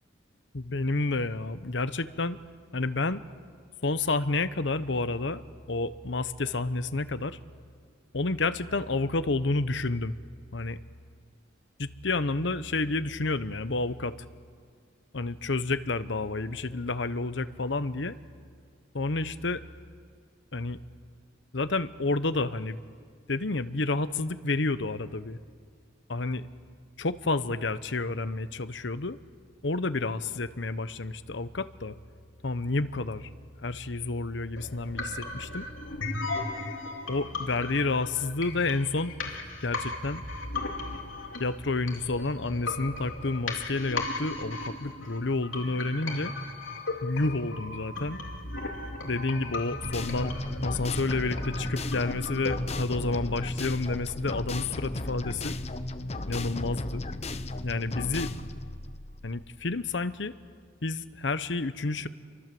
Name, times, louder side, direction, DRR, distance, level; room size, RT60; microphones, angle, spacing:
voice 1, 0.5-2.4 2.7-3.2 3.8-5.4 5.7-7.4 8.1-10.2 10.5-10.8 11.8-14.1 15.1-18.2 18.9-19.6 20.5-20.8 21.5-22.8 23.3-25.4 26.1-26.5 27.0-29.2 29.6-32.0 32.4-33.3 33.6-35.7 37.1-39.1 39.6-40.2 41.4-46.3 47.0-48.2 49.0-50.3 50.6-55.5 56.3-57.0 57.6-58.4 59.2-60.3 60.8-62.1, left 3 dB, 65° left, 13 dB, 1.0 m, -30 dB
sound 1, 34.6-52.6, left 2 dB, 90° left, 3.5 m, -36 dB
sound 2, 49.8-59.7, left 2 dB, 35° left, 0.9 m, -35 dB
28.0 x 24.0 x 7.8 m, 2.1 s
head